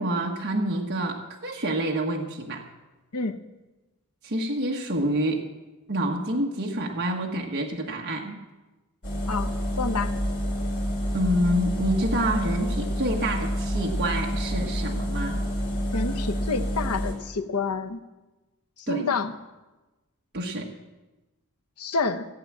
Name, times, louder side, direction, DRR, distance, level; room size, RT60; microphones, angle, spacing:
voice 1, 0.0-2.6 4.2-5.5 5.9-8.4 11.1-15.4 18.9-19.1 20.3-20.7, right 1 dB, 50° right, 0 dB, 1.4 m, -27 dB
sound 1, 9.0-17.1, equal, 50° left, 4.7 m, -28 dB
voice 2, 9.3-10.2 15.9-18.0 18.9-19.3 21.8-22.3, left 4 dB, 90° left, 7 dB, 1.0 m, -28 dB
16.0 x 8.7 x 7.3 m, 1.1 s
head